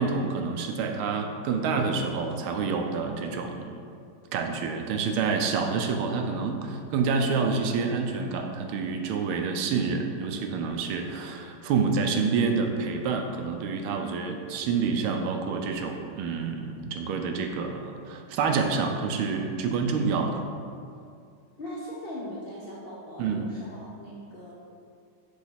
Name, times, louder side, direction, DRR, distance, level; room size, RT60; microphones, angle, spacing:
voice 1, 0.0-3.7 4.3-20.4 23.2-23.4, right 5 dB, 85° right, 4 dB, 1.5 m, -28 dB
voice 2, 21.6-24.5, equal, 65° left, -6 dB, 0.5 m, -39 dB
7.0 x 3.2 x 5.7 m, 2.3 s
omnidirectional pair, 2.3 m